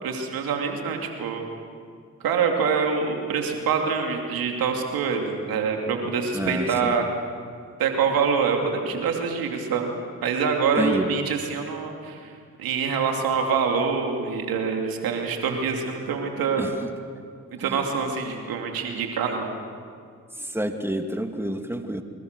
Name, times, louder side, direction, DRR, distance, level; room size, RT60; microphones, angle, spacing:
voice 1, 0.0-1.4 2.2-7.0 7.8-9.9 10.2-12.3 12.6-16.7 17.6-19.5, right 5 dB, 85° right, 3 dB, 2.7 m, -25 dB
voice 2, 6.3-6.9 10.8-11.1 16.6-16.9 17.6-17.8 20.4-22.0, right 1 dB, 5° right, 5 dB, 2.5 m, -29 dB
25.5 x 21.5 x 6.7 m, 2.2 s
supercardioid pair, 45°, 34 cm